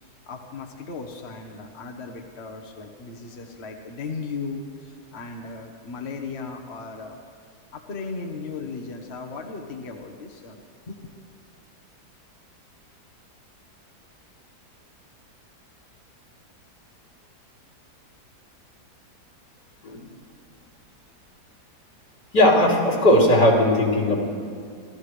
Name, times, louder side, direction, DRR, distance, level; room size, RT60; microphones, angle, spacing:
voice 1, 0.0-7.2 7.7-10.6 10.9-11.2, left 4 dB, 45° left, 1 dB, 1.4 m, -36 dB
voice 2, 22.3-24.2, left 1 dB, 85° left, -4 dB, 3.8 m, -18 dB
28.0 x 14.5 x 3.3 m, 2.2 s
omnidirectional pair, 1.7 m